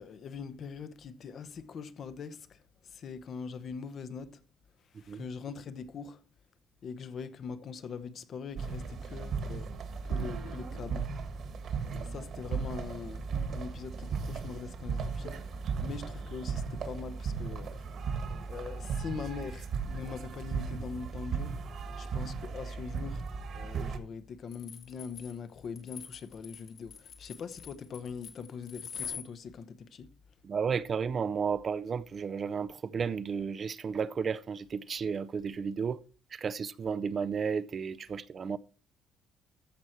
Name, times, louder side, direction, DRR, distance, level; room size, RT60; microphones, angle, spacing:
voice 1, 0.0-4.4 4.9-6.2 6.8-9.7 10.0-11.1 12.0-15.5 15.8-18.0 18.5-30.1, left 6 dB, 40° left, 0.8 m, -42 dB
sound 1, 8.6-24.0, right 5 dB, 50° right, 1.6 m, -36 dB
sound 2, 24.5-29.3, left 8 dB, 60° left, 2.0 m, -44 dB
voice 2, 30.4-36.0 36.3-38.6, right 6 dB, 30° right, 0.4 m, -33 dB
14.5 x 6.1 x 4.4 m
cardioid pair, 165°, 0 cm